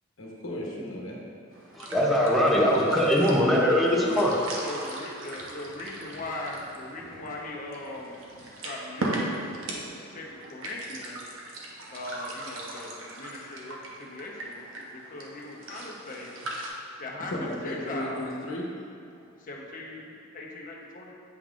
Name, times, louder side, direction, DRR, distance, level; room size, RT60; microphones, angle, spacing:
voice 1, 0.2-1.2 17.3-18.7, left 1 dB, 75° left, -3 dB, 1.1 m, -34 dB
sound 1, 1.5-16.7, right 2 dB, 70° right, 0.9 m, -39 dB
voice 2, 1.7-4.3, equal, ahead, -5 dB, 0.7 m, -22 dB
voice 3, 3.2-3.6 4.1-9.4 10.1-11.3 11.9-16.3 16.6-18.2 19.1-21.1, left 2 dB, 45° left, -2 dB, 0.9 m, -39 dB
8.5 x 5.4 x 2.5 m, 2.5 s
head